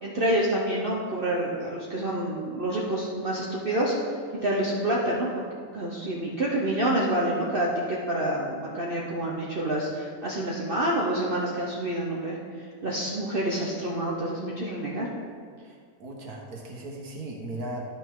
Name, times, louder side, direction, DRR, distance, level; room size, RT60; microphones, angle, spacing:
voice 1, 0.0-3.9 4.4-5.3 5.7-12.4 12.8-15.1, right 1 dB, 45° right, -4 dB, 1.0 m, -27 dB
voice 2, 15.6-17.9, right 2 dB, 80° right, -1 dB, 1.8 m, -37 dB
11.5 x 5.9 x 3.7 m, 2.1 s
omnidirectional pair, 1.6 m